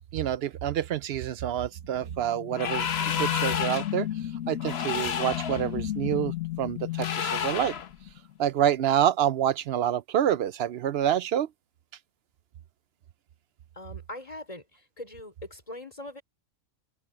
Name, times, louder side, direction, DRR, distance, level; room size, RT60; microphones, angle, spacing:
voice 1, 0.1-4.1 4.5-7.7 8.4-11.5, right 10 dB, 65° right, 0.7 m, -27 dB
sound 1, 1.8-8.4, left 14 dB, 85° left, 1.4 m, -34 dB
sound 2, 2.5-4.0 4.6-5.6 7.0-7.9, left 7 dB, 55° left, 1.1 m, -30 dB
voice 2, 13.7-16.2, left 1 dB, 25° left, 4.3 m, -42 dB
omnidirectional pair, 1.4 m